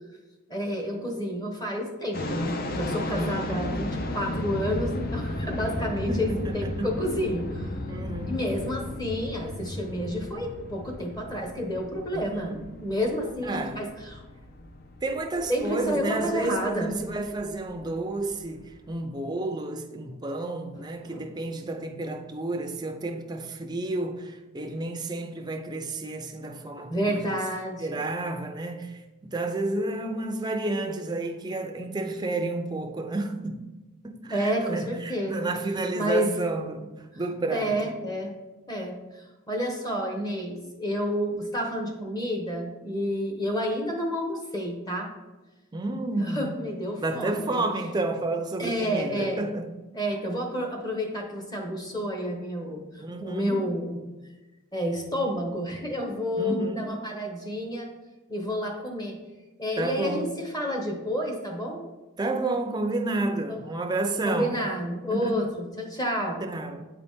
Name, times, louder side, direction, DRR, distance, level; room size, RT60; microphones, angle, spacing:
voice 1, 0.5-7.8 8.3-14.2 15.5-16.9 21.0-21.2 26.9-28.1 34.3-35.5 35.9-36.3 37.5-38.3 38.7-45.1 46.2-47.6 48.6-49.4 49.9-54.0 54.7-57.9 58.3-59.2 59.6-61.8 63.5-63.6 64.2-66.4, equal, 20° left, 1.0 m, -30 dB
sound 1, 2.1-18.9, left 1 dB, 45° left, 0.5 m, -35 dB
voice 2, 3.1-3.6 6.1-6.2 6.4-6.9 7.9-8.4 12.1-12.6 13.4-13.8 15.0-27.4 27.8-33.6 34.0-37.9 45.7-46.5 47.0-49.7 53.0-53.6 56.4-56.9 59.8-60.3 62.2-64.6 65.1-65.5 66.4-66.9, right 2 dB, 20° right, 0.5 m, -31 dB
8.4 x 4.0 x 3.6 m
head